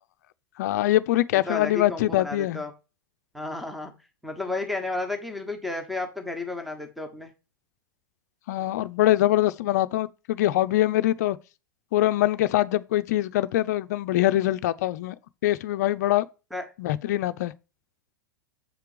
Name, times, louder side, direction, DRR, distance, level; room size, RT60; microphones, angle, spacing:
voice 1, 0.6-2.6 8.5-11.4 11.9-15.1 15.4-16.3 16.8-17.5, left 14 dB, 50° left, 0.5 m, -23 dB
voice 2, 1.3-2.7 3.3-3.9 4.2-7.3 16.5-16.7, left 2 dB, ahead, 1.3 m, -32 dB
7.6 x 4.5 x 5.0 m
figure-of-eight pair, 90°, 11 cm